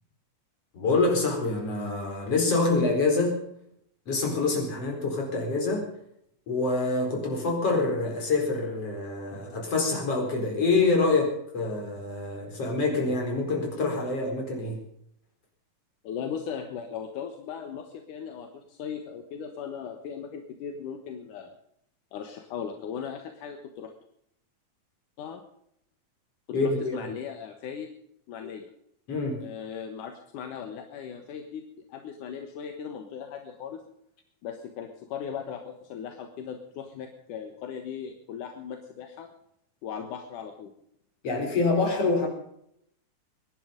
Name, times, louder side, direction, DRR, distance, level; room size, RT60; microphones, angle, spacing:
voice 1, 0.7-3.4 4.1-5.9 6.5-14.8 26.5-27.0 29.1-29.4 41.2-42.3, left 3 dB, 50° left, 1 dB, 5.5 m, -26 dB
voice 2, 16.0-21.6 22.1-23.9 25.2-25.4 26.6-27.9 28.3-28.7 29.4-31.6 31.9-33.8 34.4-39.3 39.8-40.7, left 7 dB, 80° left, 5 dB, 2.9 m, -38 dB
24.0 x 11.0 x 5.2 m, 0.72 s
omnidirectional pair, 3.6 m